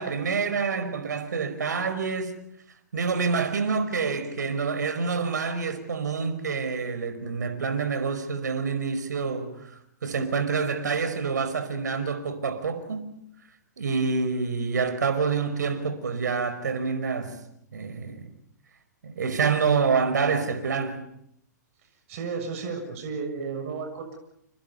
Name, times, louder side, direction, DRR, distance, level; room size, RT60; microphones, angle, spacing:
voice 1, 0.0-2.4 2.9-9.7 10.0-13.1 13.8-17.4 17.7-18.3 19.0-21.0, right 5 dB, 70° right, 5.0 m, -27 dB
voice 2, 22.1-24.2, right 5 dB, 50° right, 7.1 m, -33 dB
29.5 x 29.0 x 5.6 m
hypercardioid pair, 120°, 10 cm